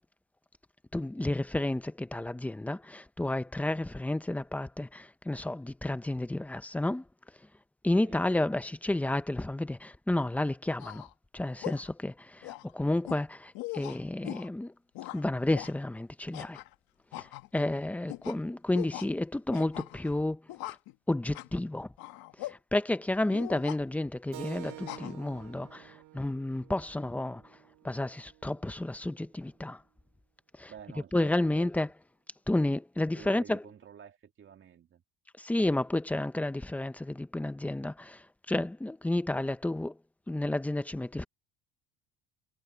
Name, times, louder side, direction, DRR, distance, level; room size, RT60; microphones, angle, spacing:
voice 1, 0.9-7.0 7.8-11.1 11.3-14.7 15.1-16.6 17.2-17.3 17.5-20.4 21.1-21.9 22.4-27.4 27.8-29.8 30.6-30.7 31.1-31.9 32.5-33.6 35.4-39.9 40.3-41.2, left 1 dB, 5° left, 0.7 m, -31 dB
voice 2, 7.9-8.3 23.2-23.4 30.7-31.7 33.0-35.0, right 8 dB, 35° right, 2.4 m, -50 dB
sound 1, 10.8-11.1 11.6-11.9 12.4-12.7 13.1-13.2 13.5-14.5 14.9-15.2 15.5-15.7 16.3-16.7 17.1-17.7 18.1-18.4 18.7-19.1 19.5-20.1 20.5-20.9 21.3-21.5 22.0-22.5 23.3-23.8 24.6-25.1, left 17 dB, 75° left, 1.6 m, -41 dB
Keyboard (musical), 24.3-29.4, right 17 dB, 70° right, 3.3 m, -50 dB
cardioid pair, 145°, 36 cm